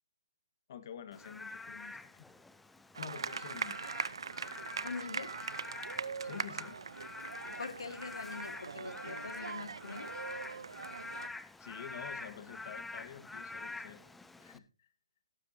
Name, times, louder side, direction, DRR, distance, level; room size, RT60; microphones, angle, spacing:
voice 1, 0.7-2.3 3.0-3.8 6.2-6.8 11.6-14.1 14.4-14.9, left 9 dB, 45° left, 11 dB, 1.5 m, -48 dB
Frog / Rain, 1.1-14.6, left 3 dB, 5° left, 0.5 m, -47 dB
sound 1, 2.9-11.3, right 5 dB, 75° right, 0.8 m, -41 dB
voice 2, 4.8-5.4 7.6-10.1, left 4 dB, 90° left, 9 dB, 1.8 m, -43 dB
18.0 x 8.3 x 2.8 m, 0.29 s
hypercardioid pair, 165°, 3 cm